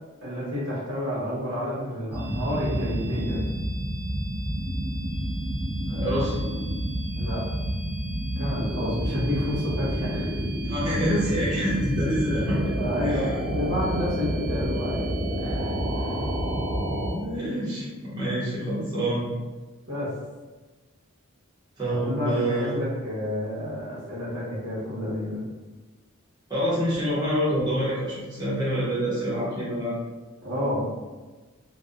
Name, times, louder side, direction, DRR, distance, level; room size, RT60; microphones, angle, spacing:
voice 1, 0.2-3.4 7.1-7.4 8.4-10.4 12.5-15.7 16.0-16.1 19.9-20.1 21.9-25.4 30.4-30.9, left 1 dB, 80° right, -8 dB, 1.1 m, -30 dB
sound 1, 2.1-17.1, equal, 45° right, 0.5 m, -29 dB
voice 2, 5.8-6.4 10.6-12.6 13.0-13.3 17.1-19.3 21.8-22.7 26.5-30.0, equal, 20° right, -10 dB, 0.8 m, -27 dB
2.7 x 2.2 x 2.3 m, 1.3 s
head